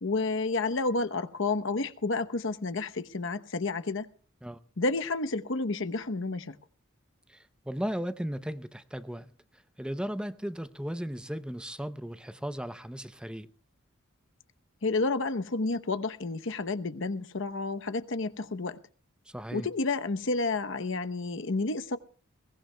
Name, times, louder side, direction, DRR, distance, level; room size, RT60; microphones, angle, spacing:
voice 1, 0.0-4.1 4.8-6.6 14.8-18.8 19.5-22.0, left 3 dB, 65° left, 0.9 m, -30 dB
voice 2, 7.3-13.5 19.3-19.7, equal, 5° right, 0.6 m, -36 dB
22.0 x 18.0 x 2.2 m
head